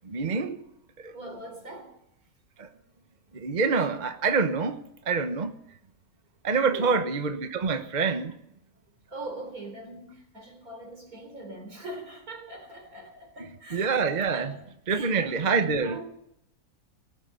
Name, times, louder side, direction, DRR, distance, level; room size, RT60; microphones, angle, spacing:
voice 1, 0.0-0.6 1.0-1.1 2.6-2.7 3.3-4.8 5.1-5.5 6.4-8.3 13.7-14.5 14.9-16.1, right 4 dB, 35° right, 1.0 m, -26 dB
voice 2, 1.1-2.0 6.7-7.0 9.1-14.6 14.9-16.1, right 2 dB, 70° right, 4.2 m, -42 dB
19.0 x 11.5 x 6.6 m
omnidirectional pair, 1.6 m